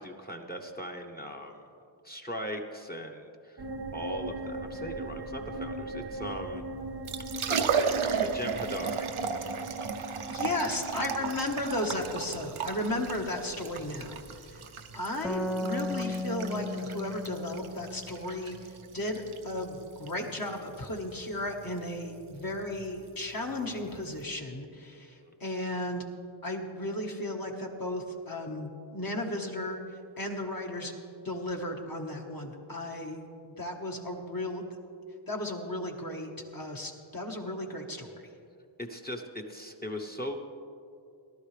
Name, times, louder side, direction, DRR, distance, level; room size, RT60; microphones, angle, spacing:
voice 1, 0.0-1.7 2.0-3.6 3.9-6.6 8.2-9.1 25.2-25.3 38.8-40.4, equal, 20° left, 4 dB, 1.0 m, -39 dB
sound 1, 3.6-14.5, right 1 dB, 55° right, 0.8 m, -40 dB
Liquid, 6.9-24.2, right 6 dB, 80° right, 0.8 m, -35 dB
voice 2, 10.3-14.6 14.9-26.0 26.4-30.9 31.2-34.6 35.3-38.1, left 1 dB, 45° left, 1 dB, 1.5 m, -35 dB
sound 2, 15.2-18.8, left 2 dB, ahead, 0.5 m, -35 dB
18.0 x 12.0 x 3.4 m, 2.5 s
wide cardioid pair, 80°, 49 cm